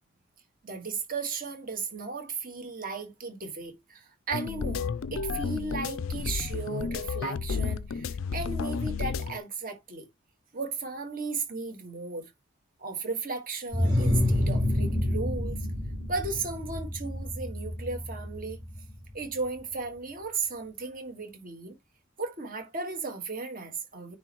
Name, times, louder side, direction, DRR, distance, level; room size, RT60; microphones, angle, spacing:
voice 1, 0.6-10.1 10.5-12.3 12.8-15.7 16.1-18.6 19.1-21.8 22.2-24.2, right 4 dB, 45° right, 1.7 m, -35 dB
sound 1, 4.3-9.4, left 5 dB, 80° left, 0.5 m, -32 dB
sound 2, 13.7-19.2, left 1 dB, 20° right, 4.4 m, -28 dB
9.6 x 3.2 x 3.0 m
head